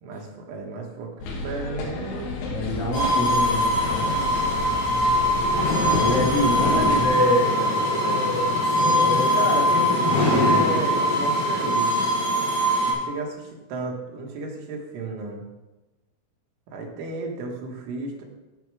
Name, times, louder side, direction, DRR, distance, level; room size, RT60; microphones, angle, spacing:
voice 1, 0.0-2.3 2.8-3.3 6.8-6.9 9.3-12.1 12.8-15.4 16.7-18.2, right 3 dB, 85° right, 1 dB, 4.0 m, -33 dB
sound 1, 1.2-7.1, left 2 dB, 65° left, 3.1 m, -32 dB
voice 2, 2.5-4.3 6.0-9.5, equal, 40° left, -3 dB, 1.7 m, -27 dB
sound 2, 2.9-12.9, left 1 dB, 90° left, 6.9 m, -22 dB
13.5 x 6.0 x 4.8 m, 1.1 s
omnidirectional pair, 5.3 m